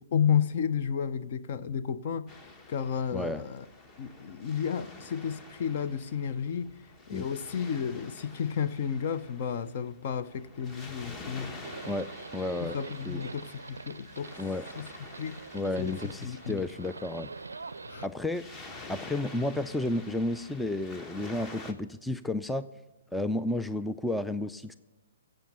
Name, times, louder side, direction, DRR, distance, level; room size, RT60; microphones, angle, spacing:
voice 1, 0.1-2.3 2.7-3.6 4.0-6.7 7.1-11.5 12.6-14.4 14.8-14.9 15.2-15.4 15.8-15.9 16.2-16.6 17.9-18.0, left 8 dB, 45° left, 12 dB, 0.8 m, -32 dB
Waves surf, 2.3-21.7, left 2 dB, 20° left, 1.2 m, -48 dB
voice 2, 3.1-3.4 7.1-7.3 11.9-12.1 12.3-12.8 13.1-13.2 14.4-14.7 15.5-17.3 18.0-18.4 18.9-22.7 23.1-24.7, left 2 dB, 5° left, 10 dB, 0.3 m, -32 dB
Livestock farm animals working animals, 11.6-18.1, right 4 dB, 75° right, 0.4 m, -45 dB
16.0 x 7.9 x 5.5 m, 1.2 s
figure-of-eight pair, 125°, 0 cm